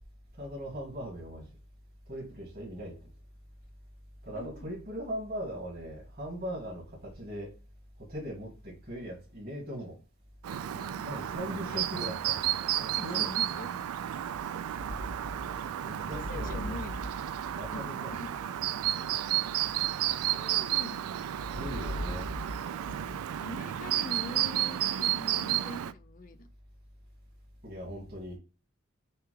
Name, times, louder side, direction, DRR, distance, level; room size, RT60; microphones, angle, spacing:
voice 1, 0.4-1.5 2.1-3.1 4.2-7.5 8.0-10.0 11.0-12.4 12.8-13.3 15.8-16.9 17.6-18.2 21.6-22.3 27.6-28.4, equal, 45° right, 2.1 m, -39 dB
voice 2, 4.3-4.7 10.7-11.1 11.7-11.8 13.0-13.7 15.9-17.1 17.7-18.3 20.3-21.1 22.8-26.5, left 2 dB, 40° left, 0.5 m, -44 dB
Chirp tweet, 10.4-25.9, right 12 dB, 90° right, 0.3 m, -32 dB
sound 1, 14.2-20.9 21.3-24.5, equal, 75° left, 0.8 m, -42 dB
6.8 x 2.3 x 3.2 m
head